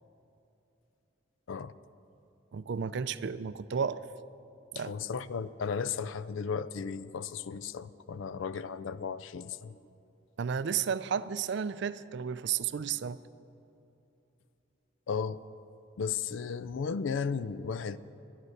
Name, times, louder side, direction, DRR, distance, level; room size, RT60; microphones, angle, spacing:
voice 1, 2.5-4.0 4.7-5.1 10.4-13.2, right 7 dB, 60° right, 15 dB, 0.4 m, -33 dB
voice 2, 4.8-9.8 15.1-15.4 16.0-18.0, left 6 dB, 75° left, 16 dB, 0.4 m, -35 dB
12.5 x 10.5 x 6.5 m, 2.8 s
head